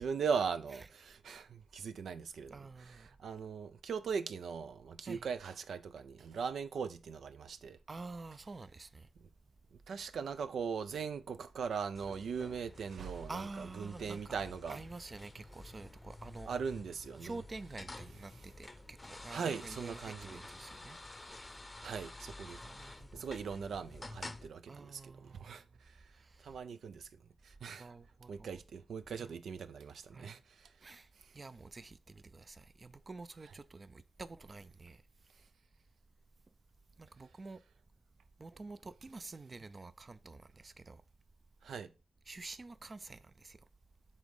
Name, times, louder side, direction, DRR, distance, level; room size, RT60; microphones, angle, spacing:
voice 1, 0.0-2.6 3.0-7.8 9.9-14.8 16.5-17.4 19.3-20.4 21.8-25.6 26.4-27.1 27.4-27.9 28.3-30.7 41.6-41.9, right 6 dB, 90° right, 0.6 m, -40 dB
voice 2, 2.5-3.1 5.0-5.3 7.9-9.1 13.3-14.4 14.7-16.5 17.2-21.0 22.5-23.3 24.7-25.6 26.2-26.5 27.7-28.6 29.2-29.3 30.1-30.3 30.8-35.0 37.0-37.6 38.4-41.0 42.3-43.6, right 3 dB, 35° right, 0.4 m, -49 dB
sound 1, 11.9-24.5, left 2 dB, 15° left, 0.7 m, -50 dB
7.2 x 4.0 x 4.8 m
wide cardioid pair, 125°, 0 cm